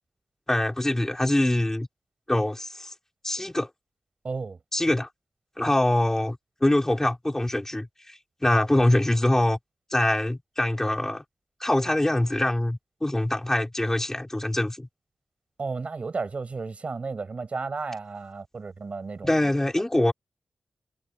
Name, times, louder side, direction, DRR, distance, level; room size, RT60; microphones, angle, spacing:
voice 1, 0.5-1.9 2.3-2.9 3.2-3.7 4.7-5.1 5.6-9.6 9.9-11.2 11.6-14.9 19.2-20.1, left 1 dB, 15° left, 5.3 m, -24 dB
voice 2, 4.2-4.6 15.6-19.4 19.9-20.0, right 4 dB, 55° right, 5.6 m, -33 dB
cardioid pair, 55°, 3 cm